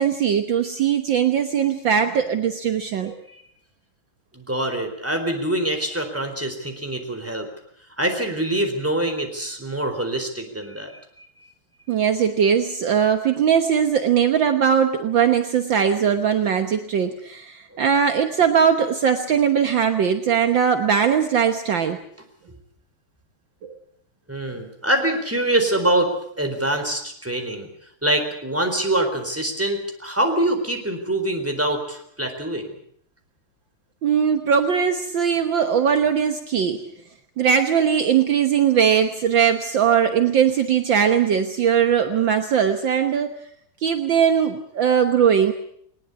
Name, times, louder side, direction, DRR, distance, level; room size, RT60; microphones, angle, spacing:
voice 1, 0.0-3.2 11.9-22.0 23.6-23.7 34.0-36.8 37.4-43.4 43.8-45.5, right 7 dB, 60° right, 7 dB, 1.9 m, -20 dB
voice 2, 4.3-7.5 8.0-10.9 11.2-11.3 22.5-22.6 24.3-27.7 28.0-32.7, right 1 dB, 5° right, 5 dB, 4.0 m, -24 dB
20.5 x 20.5 x 8.2 m, 0.66 s
omnidirectional pair, 2.4 m